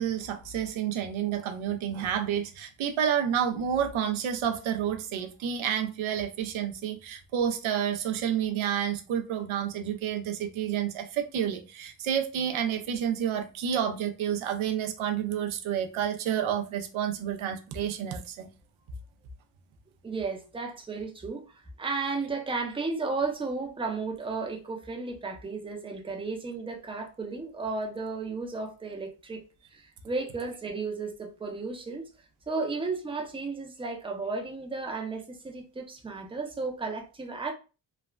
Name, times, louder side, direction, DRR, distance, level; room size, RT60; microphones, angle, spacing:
voice 1, 0.0-18.5, right 9 dB, 80° right, 0.6 m, -29 dB
voice 2, 20.0-29.4 29.7-32.0 32.5-37.5, right 4 dB, 10° right, 0.6 m, -34 dB
3.2 x 2.1 x 2.3 m
cardioid pair, 95°, 47 cm